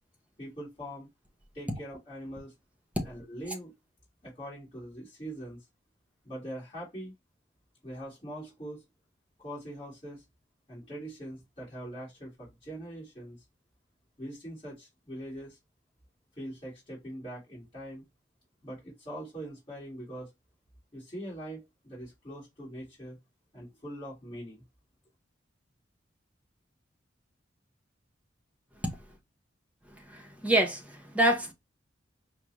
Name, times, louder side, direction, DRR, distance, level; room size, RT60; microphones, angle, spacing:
voice 1, 0.4-1.1 1.5-2.5 3.0-3.7 4.2-5.7 6.2-7.1 7.8-8.8 9.4-10.2 10.7-13.4 14.2-15.6 16.3-18.0 18.6-20.3 20.9-23.2 23.5-24.6, right 1 dB, 30° left, 1.7 m, -42 dB
voice 2, 29.9-31.5, right 1 dB, 5° right, 0.8 m, -27 dB
5.0 x 2.0 x 3.0 m
head